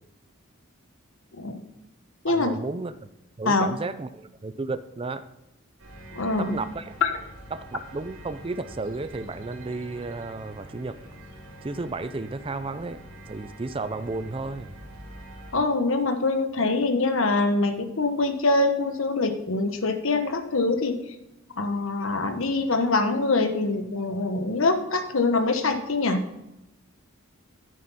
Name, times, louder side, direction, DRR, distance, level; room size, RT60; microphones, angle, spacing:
voice 1, 2.3-2.9 3.4-5.3 6.4-7.0 7.5-11.0 11.6-13.0 13.3-14.7, right 3 dB, 25° right, 12 dB, 0.4 m, -33 dB
sound 1, 5.8-15.5, right 1 dB, 65° right, 3.1 m, -45 dB
voice 2, 6.1-6.6 7.0-7.1 15.5-21.0 21.6-26.2, left 3 dB, 65° left, 7 dB, 1.1 m, -24 dB
10.0 x 9.5 x 4.1 m, 0.91 s
head